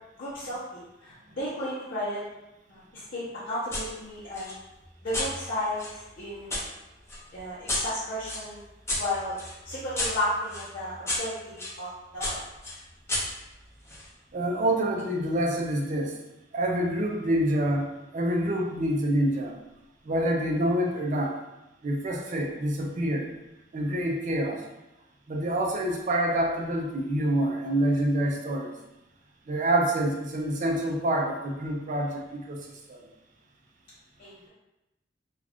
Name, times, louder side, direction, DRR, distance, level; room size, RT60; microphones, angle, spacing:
voice 1, 0.2-2.2 2.7-4.5 5.0-6.5 7.3-8.6 9.0-9.4 9.6-12.4 34.2-34.5, left 1 dB, 50° left, -11 dB, 0.7 m, -33 dB
sound 1, 3.7-3.9 4.3-6.6 7.1-11.8 12.2-14.1, left 1 dB, 15° left, 0.6 m, -33 dB
voice 2, 14.3-16.2 16.5-19.5 20.1-21.3 21.8-23.3 23.7-24.6 25.3-28.7 29.5-32.6 32.9-33.0, right 1 dB, 40° right, 0 dB, 0.5 m, -27 dB
2.4 x 2.3 x 3.4 m, 0.95 s
head